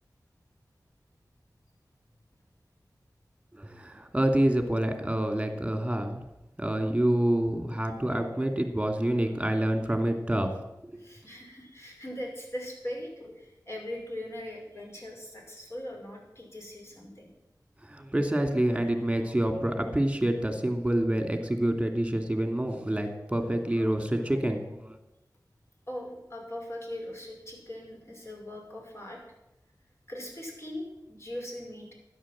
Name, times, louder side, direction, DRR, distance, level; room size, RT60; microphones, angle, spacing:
voice 1, 3.5-6.2 6.6-10.5 10.8-11.0 17.8-25.0, right 1 dB, 15° right, 6 dB, 2.6 m, -27 dB
voice 2, 10.9-17.3 25.9-29.2 30.1-31.9, left 1 dB, 35° left, -1 dB, 5.5 m, -40 dB
12.5 x 10.0 x 7.5 m, 0.91 s
wide cardioid pair, 45°, 7 cm